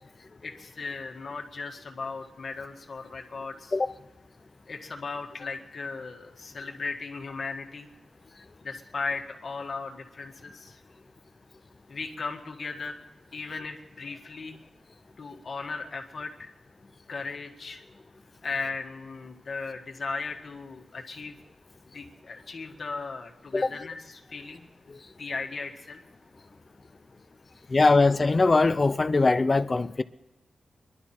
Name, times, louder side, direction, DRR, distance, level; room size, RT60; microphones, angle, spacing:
voice 1, 0.4-3.8 4.7-7.9 8.6-10.8 11.9-13.0 13.3-14.6 15.2-16.5 17.1-17.8 18.4-21.3 21.9-26.0, left 4 dB, 50° left, 1.7 m, -37 dB
voice 2, 27.7-30.0, left 3 dB, 30° left, 0.5 m, -21 dB
24.0 x 11.5 x 4.4 m
wide cardioid pair, 140°, 0 cm